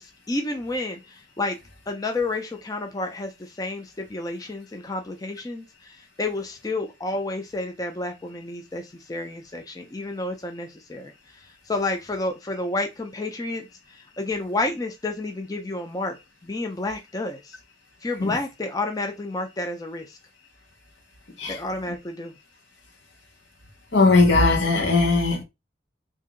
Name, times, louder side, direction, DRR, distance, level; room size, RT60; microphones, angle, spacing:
voice 1, 0.0-1.6 1.9-13.7 14.2-16.2 16.4-17.6 18.0-20.2 21.5-22.3, left 2 dB, 20° left, 0.4 m, -30 dB
voice 2, 21.4-21.9 23.9-25.4, left 3 dB, 75° left, 1.0 m, -19 dB
2.9 x 2.7 x 3.6 m
head